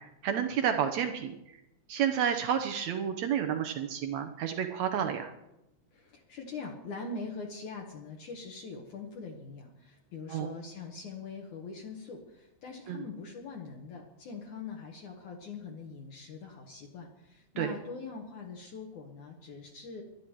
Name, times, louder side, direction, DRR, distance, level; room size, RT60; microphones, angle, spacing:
voice 1, 0.0-1.6 1.9-5.3 10.3-10.5 12.9-13.1 17.6-17.7, right 8 dB, 85° right, 6 dB, 1.5 m, -30 dB
voice 2, 5.9-20.0, left 4 dB, 55° left, -1 dB, 2.7 m, -43 dB
22.0 x 11.5 x 4.6 m, 0.88 s
omnidirectional pair, 4.6 m